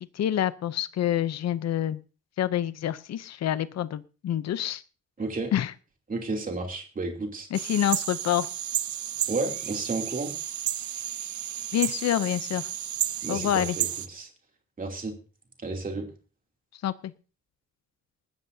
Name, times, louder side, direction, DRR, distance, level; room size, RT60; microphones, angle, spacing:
voice 1, 0.1-2.0 2.4-4.8 5.5-5.7 7.5-8.5 11.7-12.6 13.3-13.8 16.8-17.1, left 11 dB, 65° left, 14 dB, 0.7 m, -27 dB
voice 2, 5.2-5.5 6.1-7.5 9.3-10.3 13.2-14.3 14.8-15.2 15.6-16.1, right 3 dB, 30° right, 2 dB, 3.0 m, -32 dB
sound 1, 7.5-14.1, right 11 dB, 75° right, 0.9 m, -32 dB
19.0 x 13.5 x 2.8 m, 0.35 s
wide cardioid pair, 160°, 29 cm